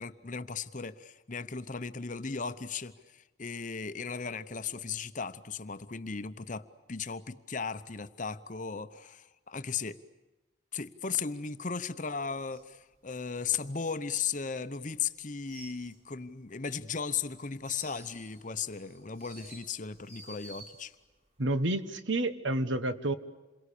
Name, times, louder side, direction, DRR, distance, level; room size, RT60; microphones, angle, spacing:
voice 1, 0.0-10.0 10.7-20.9, left 6 dB, 40° left, 11 dB, 0.8 m, -36 dB
sound 1, 12.4-14.9 15.2-16.5 16.8-21.1 21.4-21.8, right 2 dB, 35° right, 4.3 m, -53 dB
voice 2, 21.4-23.1, right 1 dB, 70° right, 11 dB, 1.4 m, -29 dB
28.0 x 22.5 x 8.5 m, 1.1 s
head